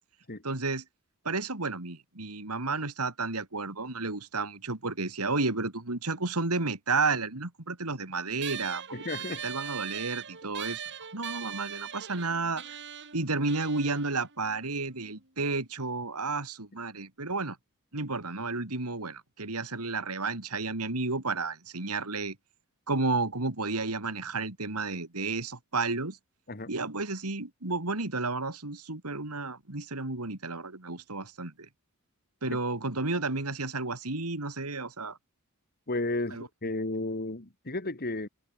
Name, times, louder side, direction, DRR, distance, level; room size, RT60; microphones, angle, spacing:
voice 1, 0.4-0.8 1.2-8.8 9.4-10.8 11.1-12.8 13.1-17.6 17.9-22.4 22.9-26.2 26.7-31.7 32.4-35.2 36.3-36.5, right 3 dB, 90° right, 3.1 m, -32 dB
sound 1, 8.4-15.2, right 9 dB, 55° right, 5.7 m, -41 dB
voice 2, 8.9-9.4 26.5-26.7 32.5-32.6 35.9-38.3, left 2 dB, 45° left, 2.2 m, -33 dB
head